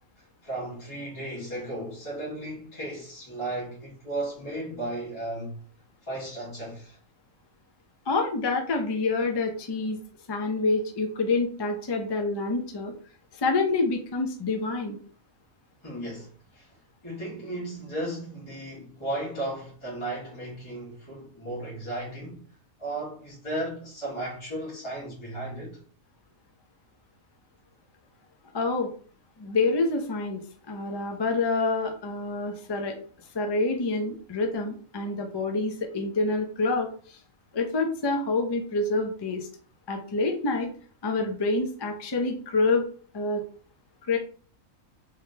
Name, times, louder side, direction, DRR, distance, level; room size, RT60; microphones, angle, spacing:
voice 1, 0.4-5.6 6.0-7.0 15.8-16.8 17.0-22.4 22.8-25.8, right 1 dB, 20° left, 1.8 m, -35 dB
voice 2, 8.1-10.0 10.3-12.9 13.4-15.0 28.5-28.9 29.4-33.0 33.3-36.9 37.5-39.5 39.9-40.7 41.0-42.8 43.1-43.4 44.1-44.2, left 3 dB, 40° left, 0.3 m, -27 dB
3.6 x 3.6 x 2.7 m
omnidirectional pair, 1.4 m